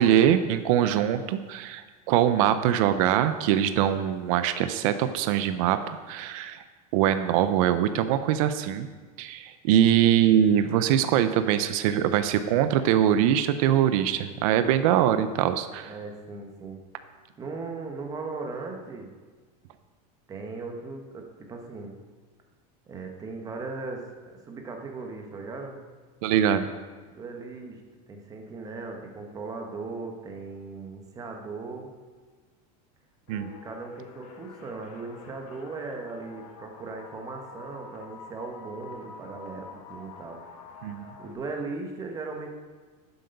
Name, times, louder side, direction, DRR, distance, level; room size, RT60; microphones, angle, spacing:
voice 1, 0.0-1.8 2.1-6.6 6.9-8.9 9.2-15.9 26.2-26.7 33.3-33.5 40.8-41.1, right 10 dB, 55° right, 10 dB, 0.6 m, -23 dB
voice 2, 15.8-16.8 17.4-19.1 20.3-21.9 22.9-25.8 27.1-27.8 28.1-31.9 33.3-40.4 40.7-40.8 41.2-42.5, right 3 dB, 15° right, 3 dB, 1.1 m, -38 dB
sound 1, 33.3-41.3, left 5 dB, 65° left, 1.8 m, -47 dB
11.0 x 7.9 x 5.3 m, 1.4 s
supercardioid pair, 170°, 21 cm